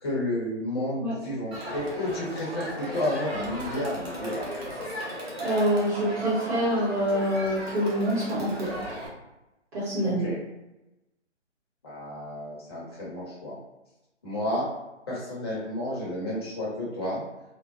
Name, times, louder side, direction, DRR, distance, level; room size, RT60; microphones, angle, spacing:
voice 1, 0.0-4.5 10.0-10.4 11.8-13.6 14.2-14.7 15.1-17.2, left 1 dB, 20° left, -7 dB, 0.8 m, -31 dB
Crowd, 1.5-9.1, equal, 55° right, 1.1 m, -36 dB
voice 2, 5.4-8.7 9.7-10.3, equal, 15° right, -12 dB, 1.2 m, -26 dB
3.3 x 2.1 x 2.5 m, 0.97 s
figure-of-eight pair, 155°, 36 cm